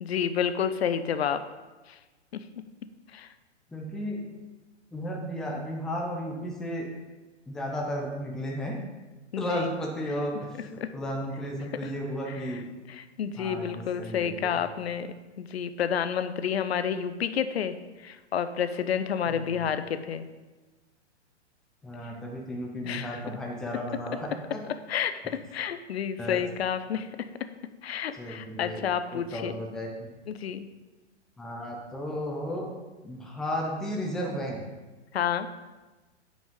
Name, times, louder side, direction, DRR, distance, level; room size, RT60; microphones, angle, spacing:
voice 1, 0.0-1.4 3.1-3.3 9.3-9.7 10.8-10.9 13.0-17.7 18.0-20.2 22.8-23.2 24.9-25.2 25.5-27.3 27.8-29.5 30.3-30.7 35.1-35.5, left 8 dB, 60° left, 10 dB, 0.7 m, -29 dB
voice 2, 3.7-4.2 4.9-6.9 7.5-8.8 9.4-12.7 13.4-14.6 19.3-19.7 21.8-24.6 26.2-26.4 28.1-28.8 29.1-30.1 31.4-32.7 33.0-34.6, equal, ahead, 0 dB, 0.3 m, -34 dB
9.2 x 5.2 x 5.2 m, 1.2 s
figure-of-eight pair, 120°, 35 cm